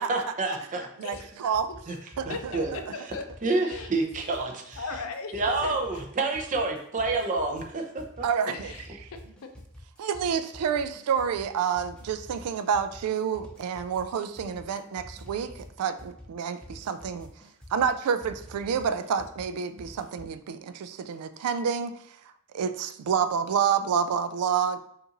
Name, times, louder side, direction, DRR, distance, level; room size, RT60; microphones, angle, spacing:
voice 1, 0.0-0.9 1.9-2.0 2.5-2.7 3.4-4.8 5.3-8.3, right 3 dB, 35° right, 2 dB, 0.6 m, -28 dB
voice 2, 1.0-1.7 2.2-2.8 8.2-8.7 10.0-17.3 17.7-22.2 22.5-24.8, right 7 dB, 80° right, 11 dB, 0.3 m, -28 dB
sound 1, 1.1-20.4, left 1 dB, 5° left, 0.6 m, -48 dB
voice 3, 2.3-3.2 3.7-3.9 4.8-6.0 8.5-9.2, left 4 dB, 65° left, 6 dB, 0.5 m, -38 dB
5.2 x 2.5 x 2.9 m, 0.72 s
head